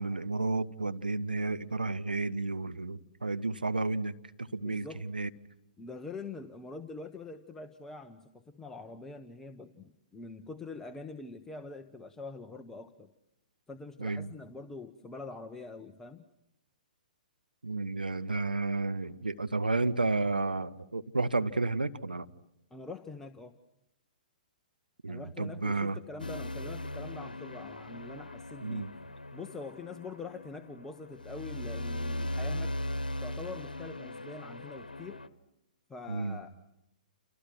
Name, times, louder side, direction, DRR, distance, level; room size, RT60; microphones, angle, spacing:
voice 1, 0.0-5.3 14.0-14.3 17.6-22.3 25.0-26.0 28.6-28.9 36.1-36.4, right 3 dB, 85° right, 13 dB, 1.1 m, -32 dB
voice 2, 4.6-5.0 5.8-13.1 13.7-16.3 22.7-23.5 25.1-28.9 29.3-32.7 33.2-35.2 35.9-36.5, left 3 dB, 10° left, 5 dB, 1.0 m, -44 dB
sound 1, 26.2-35.3, left 1 dB, 85° left, 1.1 m, -39 dB
29.0 x 29.0 x 6.1 m, 0.85 s
figure-of-eight pair, 120°, 5 cm